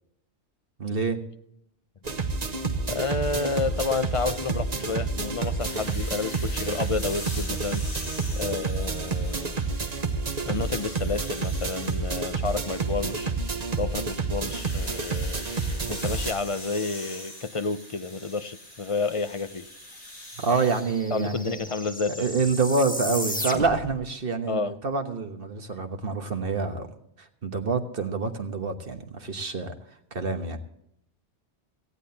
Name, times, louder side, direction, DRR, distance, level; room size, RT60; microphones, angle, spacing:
voice 1, 0.8-1.2 20.4-21.6 22.2-26.9 27.2-29.7 30.1-30.6, right 4 dB, 55° right, 6 dB, 1.5 m, -27 dB
sound 1, 2.0-16.3, right 4 dB, 40° right, 1.1 m, -29 dB
voice 2, 2.9-7.8 8.4-9.6 10.5-15.4 15.7-19.7 21.1-22.3 24.5-24.7, left 4 dB, 40° left, 11 dB, 0.5 m, -30 dB
sound 2, 5.6-9.9 10.3-12.0 14.5-20.8, left 1 dB, 65° left, 6.3 m, -42 dB
sound 3, 19.5-19.6 19.8-24.0, equal, 5° left, 1.4 m, -35 dB
18.0 x 15.0 x 2.8 m, 0.74 s
omnidirectional pair, 1.2 m